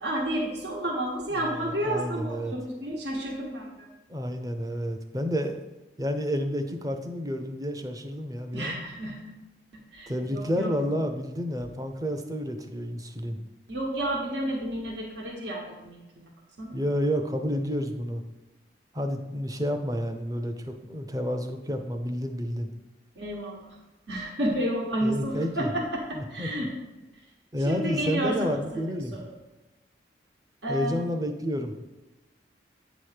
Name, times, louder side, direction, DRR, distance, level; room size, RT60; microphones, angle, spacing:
voice 1, 0.0-3.9 8.5-9.3 9.7-10.7 13.7-16.2 16.6-16.8 23.1-23.5 24.1-26.7 27.6-29.2 30.6-31.1, right 1 dB, 80° right, -2 dB, 1.4 m, -31 dB
voice 2, 1.4-2.5 4.1-5.7 6.0-8.8 10.1-13.4 16.7-18.2 18.9-22.7 25.0-25.7 26.2-26.7 27.5-29.2 30.7-31.8, equal, 20° right, 6 dB, 0.6 m, -30 dB
9.0 x 3.0 x 6.5 m, 1.0 s
head